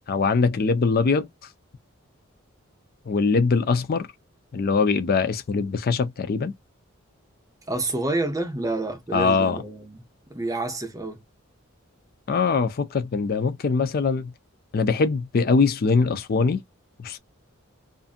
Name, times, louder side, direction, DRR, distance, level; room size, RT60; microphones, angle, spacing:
voice 1, 0.1-1.3 3.1-4.1 4.5-6.5 9.1-9.6 12.3-14.3 14.7-16.6 17.0-17.2, left 4 dB, 45° left, 0.4 m, -22 dB
voice 2, 7.7-10.0 10.3-11.2, right 2 dB, 15° right, 0.6 m, -28 dB
2.5 x 2.5 x 2.4 m
head